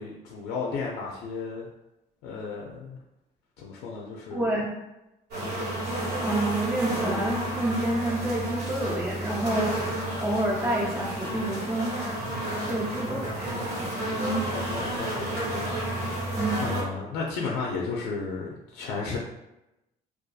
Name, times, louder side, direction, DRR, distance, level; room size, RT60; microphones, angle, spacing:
voice 1, 0.0-1.7 2.2-3.0 3.6-4.5 5.4-5.8 13.0-13.6 14.0-14.2 14.4-19.2, left 4 dB, 90° left, -1 dB, 0.4 m, -34 dB
voice 2, 4.3-4.7 6.2-9.8 10.2-11.9 12.7-13.6 14.2-14.4 16.4-16.6, right 1 dB, 10° right, -6 dB, 0.4 m, -28 dB
sound 1, 5.3-16.8, right 1 dB, 80° right, 1.3 m, -31 dB
2.6 x 2.3 x 2.3 m, 0.92 s
cardioid pair, 110°, 17 cm